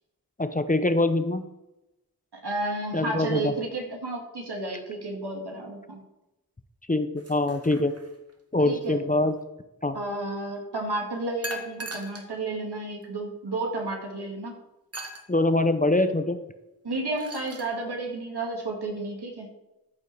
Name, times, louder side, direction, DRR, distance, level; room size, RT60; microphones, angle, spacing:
voice 1, 0.4-1.4 2.9-3.5 6.9-7.9 8.5-9.3 9.8-10.0 15.3-16.4, left 2 dB, 20° left, 9 dB, 0.7 m, -24 dB
voice 2, 2.4-6.0 8.6-9.0 9.9-14.6 16.8-19.5, right 2 dB, 80° right, 0 dB, 2.4 m, -32 dB
sound 1, 7.2-8.3 11.4-12.3 13.0-13.1 14.9-15.3 16.9-17.7, right 1 dB, 35° right, 1.5 m, -39 dB
14.0 x 5.4 x 4.6 m, 0.96 s
wide cardioid pair, 60°, 39 cm